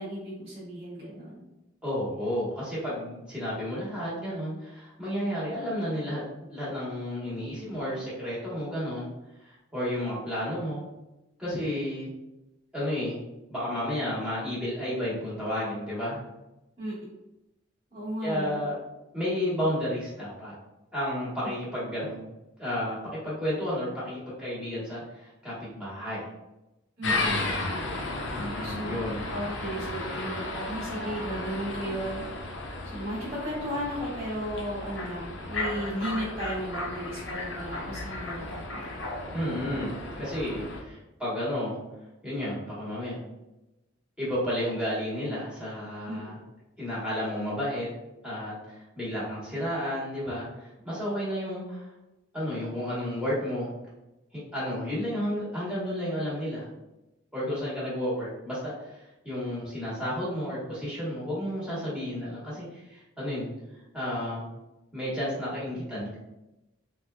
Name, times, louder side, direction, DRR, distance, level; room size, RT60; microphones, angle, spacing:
voice 1, 0.0-1.5 16.8-17.1 17.9-18.6 27.0-27.5 28.6-32.2 32.8-38.8 46.1-46.2 51.0-51.1, equal, 30° right, -10 dB, 1.3 m, -35 dB
voice 2, 1.8-6.2 6.5-9.1 9.4-10.8 11.4-12.1 12.7-13.2 13.5-16.2 18.2-18.8 19.1-20.5 20.9-22.2 22.6-26.2 28.3-29.3 39.3-41.8 42.2-43.2 44.2-46.4 46.8-47.9 48.2-51.9 52.3-53.7 54.3-56.7 57.3-59.0 59.2-63.5 63.9-64.5 64.9-66.2, equal, 5° right, -9 dB, 1.2 m, -32 dB
sound 1, 27.0-40.8, left 2 dB, 55° left, 0.6 m, -34 dB
4.1 x 2.3 x 2.3 m, 0.97 s
head